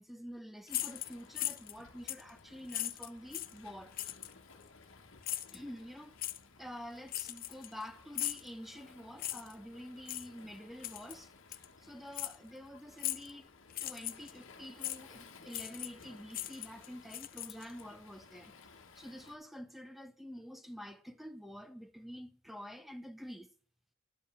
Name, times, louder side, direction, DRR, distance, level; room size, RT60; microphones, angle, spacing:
voice 1, 0.0-3.9 5.5-6.2 6.6-13.5 13.8-18.5 19.0-23.5, equal, ahead, 0.7 m, -48 dB
Waves surf, 0.7-19.4, left 4 dB, 65° left, 1.4 m, -58 dB
sound 1, 0.7-1.8 2.1-2.3 2.7-3.6 4.0-4.3 5.2-5.6 6.2-6.4 7.1-7.8 8.1-8.5 9.2-9.5 10.1-10.3 10.8-11.2 11.5-11.7 12.1-12.4 13.0-13.3 13.7-14.3 14.8-15.0 15.5-16.0 16.3-17.8, left 14 dB, 45° left, 0.6 m, -38 dB
10.5 x 5.4 x 7.1 m
head